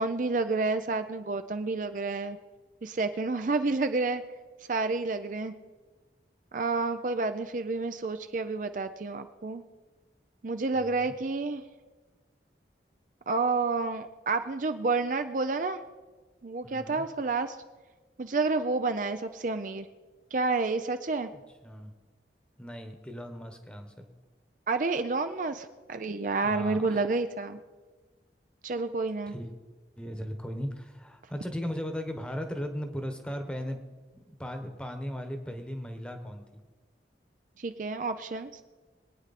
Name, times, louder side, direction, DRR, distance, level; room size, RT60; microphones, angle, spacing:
voice 1, 0.0-2.4 2.8-4.2 4.7-5.5 6.5-9.6 10.4-11.6 13.3-15.8 16.4-17.6 18.2-19.9 20.3-21.3 24.7-27.6 28.6-29.3 37.6-38.6, right 3 dB, 45° right, 9 dB, 0.5 m, -29 dB
voice 2, 10.7-11.1 16.6-17.1 21.6-21.9 22.6-23.9 26.4-27.0 29.3-29.5 30.0-33.8 34.3-36.6, equal, 5° left, 5 dB, 1.2 m, -37 dB
22.0 x 9.4 x 4.2 m, 1.3 s
head